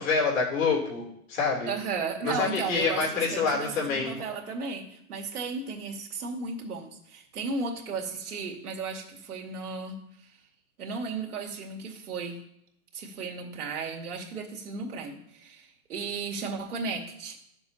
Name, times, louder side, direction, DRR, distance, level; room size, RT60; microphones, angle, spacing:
voice 1, 0.0-1.7 2.2-4.2, left 4 dB, 60° left, -1 dB, 3.1 m, -27 dB
voice 2, 1.7-10.0 10.8-12.4 12.9-17.4, right 4 dB, 85° right, 1 dB, 2.2 m, -35 dB
12.0 x 6.9 x 2.8 m, 0.74 s
hypercardioid pair, 155°, 44 cm